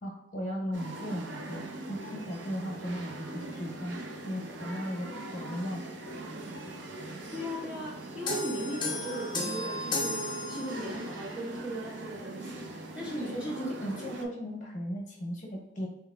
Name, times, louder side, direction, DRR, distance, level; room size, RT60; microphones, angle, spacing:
voice 1, 0.0-4.0 4.2-5.8 13.2-15.9, equal, 40° left, -1 dB, 1.1 m, -37 dB
sound 1, 0.7-14.3, right 2 dB, 70° right, 0.5 m, -41 dB
voice 2, 7.3-10.2 10.5-13.7 14.2-14.3, equal, 5° right, -4 dB, 0.5 m, -38 dB
sound 2, 8.3-11.1, left 1 dB, 25° left, 0.8 m, -34 dB
4.4 x 3.3 x 2.3 m, 0.84 s
head